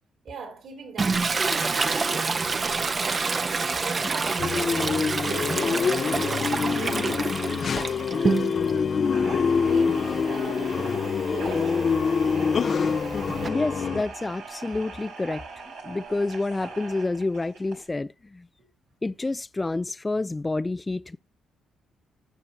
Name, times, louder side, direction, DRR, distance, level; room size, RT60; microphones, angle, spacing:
voice 1, 0.2-3.3 3.8-8.9 9.6-11.8, right 5 dB, 65° right, 4.0 m, -41 dB
Toilet flush, 1.0-8.8 9.2-13.5, right 4 dB, 40° right, 1.0 m, -28 dB
sound 1, 4.4-14.0, left 6 dB, 50° left, 0.8 m, -25 dB
sound 2, 9.0-17.9, right 4 dB, 80° right, 3.2 m, -41 dB
voice 2, 13.5-15.4 15.8-18.5 19.0-21.2, left 2 dB, 25° left, 0.5 m, -28 dB
19.0 x 6.7 x 2.9 m
hypercardioid pair, 50°, 0 cm